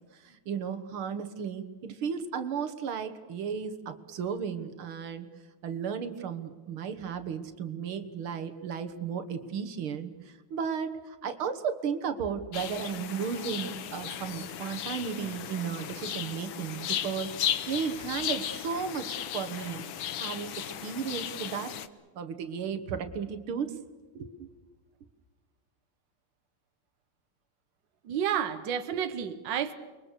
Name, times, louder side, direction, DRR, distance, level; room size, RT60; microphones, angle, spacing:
voice 1, 0.1-5.3 5.6-17.3 17.7-19.8 20.2-21.7 22.1-23.7 24.1-24.5, right 7 dB, 85° right, 8 dB, 2.3 m, -34 dB
sound 1, 12.5-21.9, left 10 dB, 75° left, 1.7 m, -36 dB
voice 2, 28.1-29.7, right 9 dB, 65° right, 9 dB, 1.7 m, -30 dB
29.5 x 22.5 x 6.7 m, 1.3 s
omnidirectional pair, 2.3 m